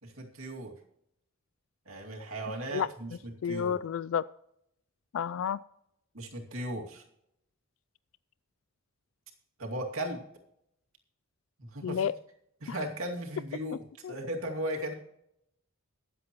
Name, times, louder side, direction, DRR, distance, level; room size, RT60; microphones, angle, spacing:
voice 1, 0.0-0.7 1.9-3.8 6.1-7.0 9.6-10.2 11.6-12.1 12.6-14.9, right 1 dB, 80° right, 1 dB, 2.4 m, -37 dB
voice 2, 3.4-4.3 5.1-5.6 11.8-12.1 14.0-14.2, left 8 dB, 75° left, 18 dB, 0.4 m, -30 dB
22.0 x 7.8 x 3.0 m, 0.77 s
head